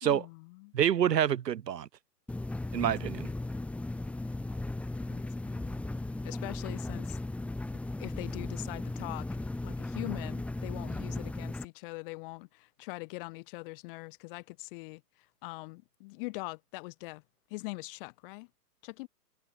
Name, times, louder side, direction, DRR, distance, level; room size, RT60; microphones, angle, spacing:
voice 1, 0.0-0.7 2.8-3.3 5.1-5.8 6.2-7.2 8.0-15.0 15.4-17.2 17.5-18.5 18.8-19.1, left 26 dB, 35° left, 2.7 m, -43 dB
voice 2, 0.7-1.9 2.7-3.3, right 9 dB, 90° right, 1.5 m, -27 dB
sound 1, 2.3-11.7, left 2 dB, 5° left, 1.6 m, -36 dB
hypercardioid pair, 155°, 48 cm